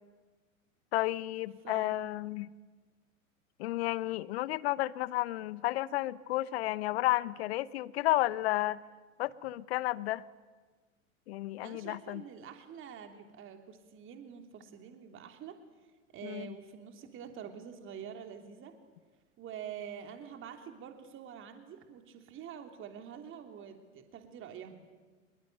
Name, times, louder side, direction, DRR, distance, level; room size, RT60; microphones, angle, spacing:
voice 1, 0.9-2.5 3.6-8.8 9.2-10.2 11.3-12.2 16.2-16.5, left 17 dB, 50° left, 19 dB, 1.1 m, -32 dB
voice 2, 1.6-2.1 11.6-15.6 16.1-18.7 19.4-24.8, right 8 dB, 30° right, 5 dB, 3.0 m, -46 dB
25.5 x 23.0 x 9.4 m, 1.4 s
figure-of-eight pair, 95°, 40 cm